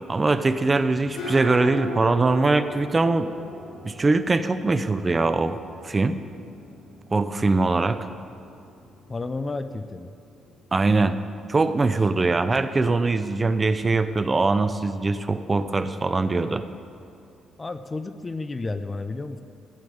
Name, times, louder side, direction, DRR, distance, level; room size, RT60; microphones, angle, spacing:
voice 1, 0.1-3.3 3.8-5.6 5.8-6.2 7.1-8.1 10.7-11.2 11.5-16.6, right 3 dB, 25° right, 10 dB, 0.6 m, -22 dB
sound 1, 0.7-18.2, left 2 dB, 85° left, 2.9 m, -43 dB
voice 2, 9.1-10.1 17.6-19.4, left 3 dB, 25° left, 10 dB, 0.6 m, -31 dB
14.0 x 5.2 x 9.4 m, 2.5 s
cardioid pair, 90°, 0 cm